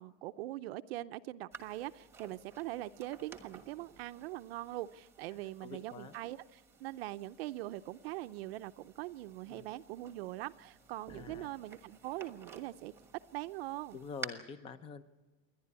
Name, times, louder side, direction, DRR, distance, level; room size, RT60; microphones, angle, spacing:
voice 1, 0.0-12.9 13.3-14.0, right 16 dB, 55° right, 11 dB, 0.7 m, -42 dB
sound 1, 1.5-14.3, right 4 dB, 5° right, 1.3 m, -53 dB
voice 2, 5.6-6.1 9.5-9.7 11.1-11.5 13.9-15.0, left 5 dB, 15° left, 13 dB, 0.6 m, -46 dB
28.5 x 11.5 x 9.6 m, 1.3 s
supercardioid pair, 170°, 36 cm